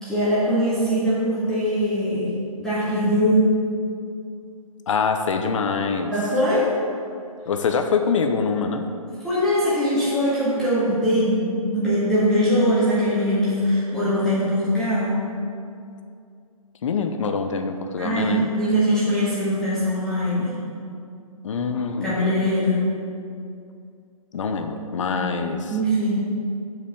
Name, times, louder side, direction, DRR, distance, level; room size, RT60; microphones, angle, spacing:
voice 1, 0.0-2.3 2.6-3.5 6.1-6.8 9.2-15.2 18.0-20.5 22.0-22.9 25.1-25.4 25.7-26.1, equal, 5° left, -12 dB, 1.7 m, -21 dB
voice 2, 4.9-6.1 7.5-8.9 16.8-18.5 21.4-22.2 24.3-25.8, left 5 dB, 55° left, 7 dB, 0.8 m, -24 dB
7.1 x 5.0 x 6.9 m, 2.4 s
hypercardioid pair, 155°, 19 cm